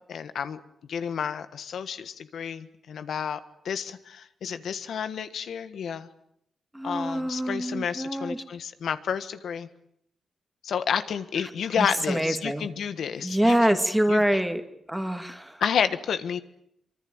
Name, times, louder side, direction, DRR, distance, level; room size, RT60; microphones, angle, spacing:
voice 1, 0.1-0.6 0.9-3.4 3.6-6.1 6.8-9.7 10.6-13.6 14.1-14.2 15.6-16.4, left 7 dB, 75° left, 11 dB, 1.5 m, -30 dB
voice 2, 6.7-8.4 11.4-11.5 11.8-12.7 13.2-14.6 14.9-15.6, right 1 dB, 5° right, 8 dB, 2.1 m, -25 dB
24.5 x 24.0 x 8.8 m, 0.73 s
wide cardioid pair, 140°, 0 cm